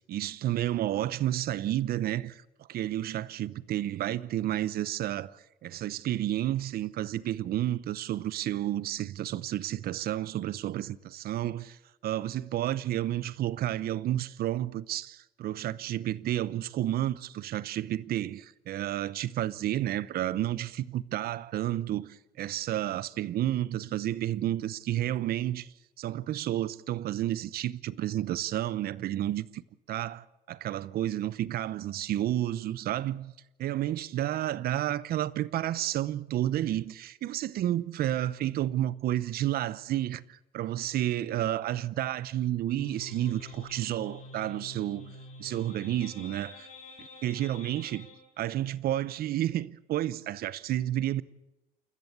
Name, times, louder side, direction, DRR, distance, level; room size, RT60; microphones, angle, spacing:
voice 1, 0.0-2.4 2.7-11.8 12.0-29.6 29.9-33.3 33.6-45.1 45.4-46.7 47.2-48.1 48.4-51.2, right 13 dB, 65° right, 0.8 m, -31 dB
sound 1, 42.8-48.2, left 2 dB, 45° left, 7.2 m, -47 dB
29.0 x 14.0 x 8.3 m
cardioid pair, 110°, 17 cm